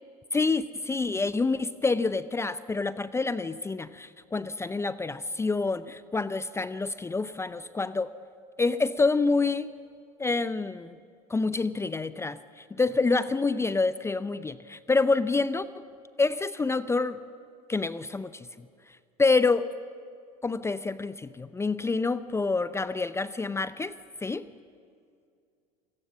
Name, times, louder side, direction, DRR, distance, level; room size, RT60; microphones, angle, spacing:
voice 1, 0.3-8.1 8.6-9.7 10.2-10.9 11.3-12.4 12.7-15.6 16.2-17.2 17.7-18.5 19.2-19.6 20.4-24.0 24.2-24.4, left 3 dB, 15° left, 15 dB, 0.6 m, -27 dB
27.5 x 17.5 x 7.3 m, 2.3 s
hypercardioid pair, 75°, 20 cm